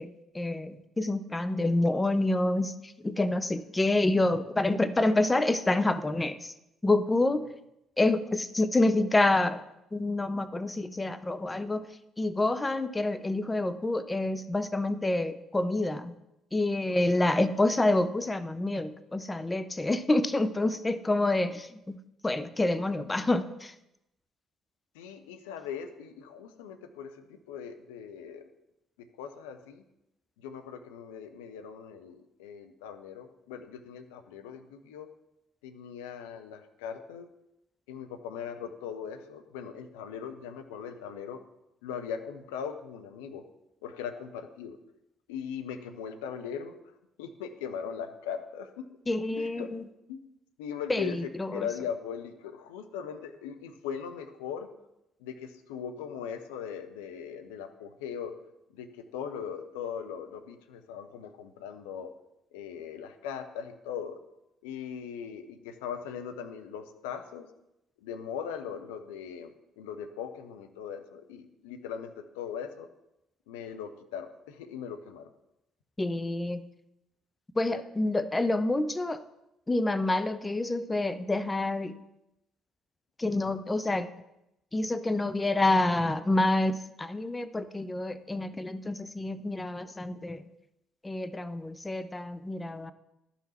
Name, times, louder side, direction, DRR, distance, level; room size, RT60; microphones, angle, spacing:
voice 1, 0.0-6.5 6.8-7.4 8.0-9.6 9.9-11.9 12.2-16.1 16.5-22.0 22.2-23.7 49.1-49.8 50.9-51.7 76.0-76.6 77.6-79.2 79.7-82.0 83.2-84.1 84.7-90.4 91.0-92.9, left 2 dB, 20° left, 12 dB, 0.6 m, -28 dB
voice 2, 24.9-28.4 29.0-29.8 30.4-35.1 35.6-37.3 37.9-41.4 41.8-43.4 43.8-44.8 45.3-46.8 47.2-48.9 49.3-49.7 50.1-50.2 50.6-54.7 55.2-58.3 58.7-62.1 62.5-64.2 64.6-67.5 68.0-72.9 73.5-75.3 77.7-77.8, left 7 dB, 70° left, 7 dB, 0.7 m, -40 dB
11.5 x 5.6 x 4.2 m, 0.87 s
figure-of-eight pair, 45°, 0 cm